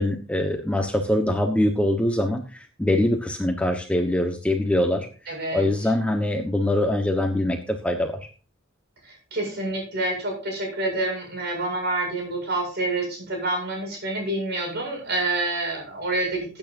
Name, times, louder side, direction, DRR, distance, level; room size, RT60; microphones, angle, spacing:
voice 1, 0.0-8.2, left 1 dB, 5° left, 4 dB, 1.2 m, -23 dB
voice 2, 5.3-5.7 9.0-16.6, right 2 dB, 55° right, 2 dB, 8.0 m, -28 dB
18.5 x 9.1 x 2.7 m, 0.36 s
head